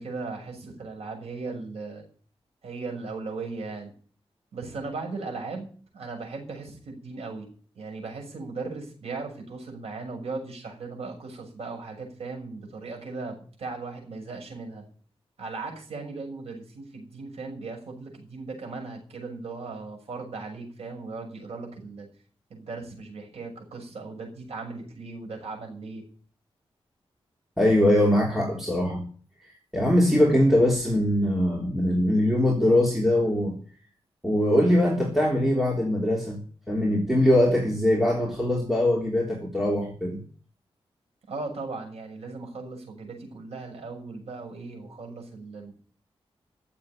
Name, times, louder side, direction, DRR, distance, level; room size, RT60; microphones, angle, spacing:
voice 1, 0.0-2.0 2.6-3.9 4.5-5.7 5.9-7.5 7.7-14.8 15.4-22.1 22.5-26.0 41.3-45.7, right 3 dB, 85° right, 2 dB, 6.7 m, -37 dB
voice 2, 27.6-29.0 29.7-33.6 34.2-36.4 36.7-40.2, left 1 dB, 5° right, -2 dB, 3.5 m, -22 dB
15.0 x 7.8 x 8.9 m, 0.44 s
wide cardioid pair, 100°, 10 cm